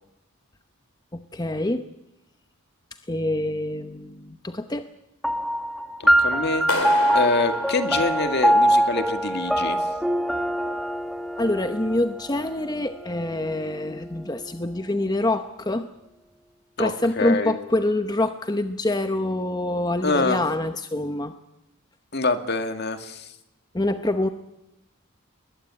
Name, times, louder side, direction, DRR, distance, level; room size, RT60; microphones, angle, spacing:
voice 1, 1.1-1.9 3.1-4.8 11.4-15.9 16.8-21.3 23.7-24.3, left 1 dB, 20° left, 8 dB, 0.8 m, -26 dB
sound 1, 5.2-14.1, equal, ahead, 1.6 m, -24 dB
voice 2, 6.0-6.7 7.1-9.8 16.8-17.6 20.0-20.4 22.1-23.3, left 3 dB, 50° left, 8 dB, 2.0 m, -25 dB
Clapping, 6.7-8.7, left 3 dB, 75° left, 3.7 m, -30 dB
21.5 x 20.0 x 9.8 m, 0.89 s
head